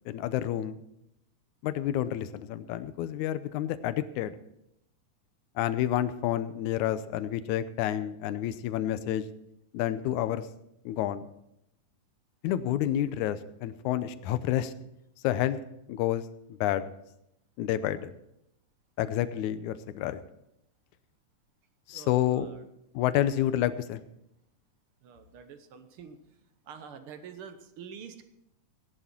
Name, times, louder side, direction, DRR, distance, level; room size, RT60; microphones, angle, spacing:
voice 1, 0.1-0.8 1.6-4.4 5.6-9.3 9.7-10.5 10.9-11.2 12.4-14.7 15.2-15.6 15.9-16.2 16.5-16.9 17.6-18.1 19.0-20.2 21.9-22.5 22.9-24.0, left 12 dB, 75° left, 12 dB, 2.0 m, -29 dB
voice 2, 21.9-22.6 25.0-26.2 26.7-28.2, right 7 dB, 70° right, 9 dB, 1.3 m, -46 dB
17.0 x 11.0 x 4.5 m, 0.81 s
omnidirectional pair, 3.7 m